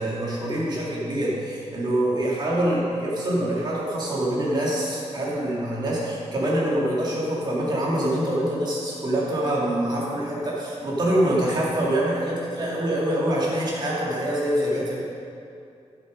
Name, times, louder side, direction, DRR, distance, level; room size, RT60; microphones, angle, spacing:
voice 1, 0.0-15.0, right 1 dB, 40° right, -6 dB, 2.6 m, -25 dB
12.5 x 7.3 x 5.3 m, 2.5 s
wide cardioid pair, 175°, 11 cm